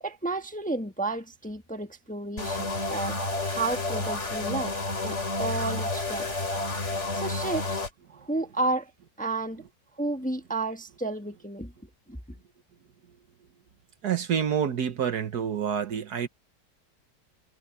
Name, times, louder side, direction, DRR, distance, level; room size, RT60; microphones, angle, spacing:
voice 1, 0.0-4.7 5.0-6.3 7.2-7.8 8.1-8.9 9.2-9.6 10.0-11.7, right 2 dB, 5° left, 1.1 m, -32 dB
sound 1, 2.4-7.9, left 2 dB, 40° left, 3.1 m, -30 dB
voice 2, 14.0-16.3, right 8 dB, 60° right, 1.5 m, -27 dB
omnidirectional pair, 2.0 m